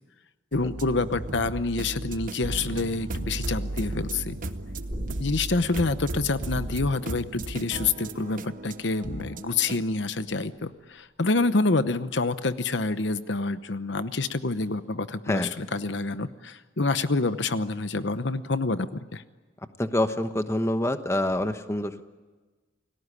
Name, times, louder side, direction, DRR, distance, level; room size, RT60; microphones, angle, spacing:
voice 1, 0.5-4.4 5.2-19.2, left 3 dB, 65° left, 12 dB, 0.9 m, -27 dB
sound 1, 0.5-9.9, right 2 dB, 45° right, 0.9 m, -36 dB
sound 2, 3.1-8.4, right 1 dB, 85° right, 2.6 m, -39 dB
sound 3, 10.8-12.2 12.5-12.6, equal, 5° right, 5.7 m, -45 dB
voice 2, 19.8-22.0, left 1 dB, 15° left, 9 dB, 1.1 m, -26 dB
29.0 x 18.5 x 9.8 m, 1.3 s
head